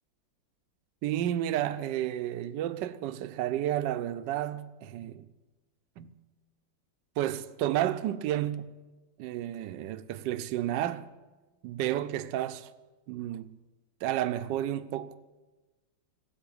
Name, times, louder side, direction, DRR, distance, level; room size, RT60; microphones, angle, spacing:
voice 1, 1.0-5.3 6.0-6.1 7.2-8.7 9.2-11.1 11.6-12.7 13.1-13.6 14.0-15.2, right 12 dB, 75° right, 1.3 m, -31 dB
14.0 x 8.4 x 9.9 m
omnidirectional pair, 2.1 m